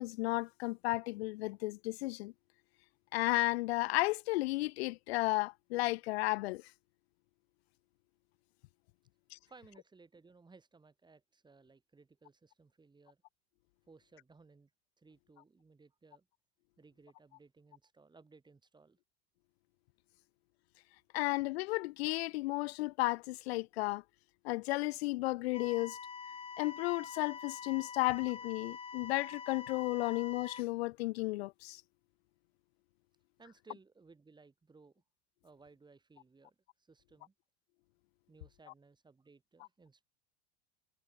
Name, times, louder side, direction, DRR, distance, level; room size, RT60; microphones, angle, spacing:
voice 1, 0.0-2.3 3.1-6.6 9.3-9.4 21.1-24.0 24.4-26.0 26.6-31.8, left 20 dB, 75° left, 0.5 m, -33 dB
voice 2, 9.5-13.2 13.9-14.7 15.0-16.3 16.8-19.0 33.4-35.0 35.4-37.3 38.3-40.0, right 4 dB, 15° right, 6.2 m, -61 dB
sound 1, 25.5-30.6, left 6 dB, 20° left, 1.4 m, -46 dB
supercardioid pair, 115°, 31 cm